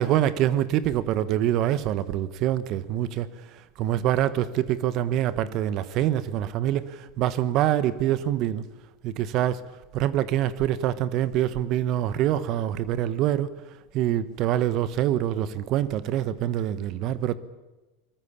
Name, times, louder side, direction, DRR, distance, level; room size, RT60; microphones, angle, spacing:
voice 1, 0.0-3.3 3.8-8.6 9.0-9.6 9.9-13.5 13.9-17.3, right 12 dB, 50° right, 1.3 m, -25 dB
22.0 x 20.5 x 8.6 m
hypercardioid pair, 90°, 0 cm